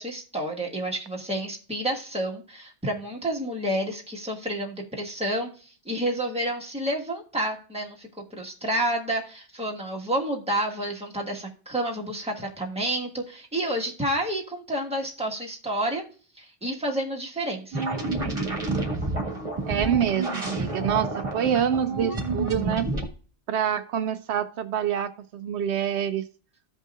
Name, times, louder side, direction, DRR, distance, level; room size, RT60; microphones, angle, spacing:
voice 1, 0.0-16.0 16.4-17.8, right 1 dB, 5° right, -1 dB, 1.4 m, -30 dB
sound 1, 17.7-23.1, right 2 dB, 30° right, 1.5 m, -29 dB
voice 2, 19.7-22.9 23.5-26.2, right 9 dB, 80° right, 10 dB, 0.9 m, -26 dB
15.0 x 5.4 x 2.4 m, 0.39 s
omnidirectional pair, 1.1 m